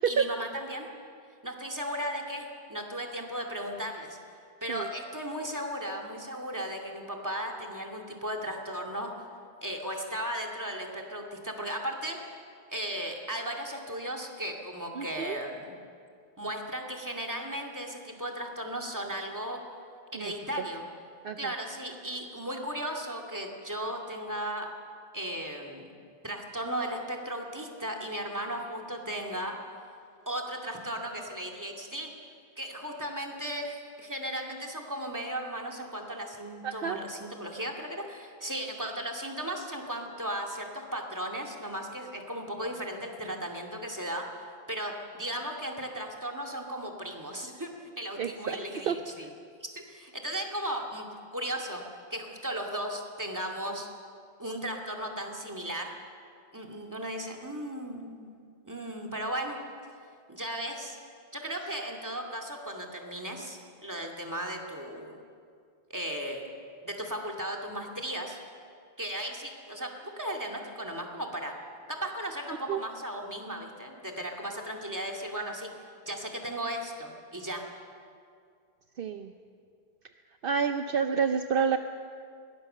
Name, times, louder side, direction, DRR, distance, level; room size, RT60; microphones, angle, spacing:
voice 1, 0.1-0.9 1.4-4.2 4.6-9.1 9.6-12.2 12.7-15.7 16.4-19.6 20.1-20.8 21.4-24.7 25.1-25.9 26.2-29.6 30.3-32.1 32.6-44.3 44.7-47.7 48.0-49.3 49.7-51.1 51.3-51.8 52.1-53.9 54.4-55.9 56.5-58.4 58.6-59.6 60.3-61.0 61.3-65.2 65.9-66.4 66.8-68.4 69.0-71.5 71.9-75.7 76.1-77.7, right 1 dB, 15° right, 1 dB, 2.3 m, -36 dB
voice 2, 15.0-15.4 20.1-20.3 21.2-21.5 36.6-37.0 48.2-48.6 48.9-49.0 72.7-72.8 79.0-79.3 80.4-81.8, right 7 dB, 65° right, 8 dB, 0.9 m, -28 dB
22.0 x 18.0 x 6.7 m, 2.3 s
omnidirectional pair, 1.1 m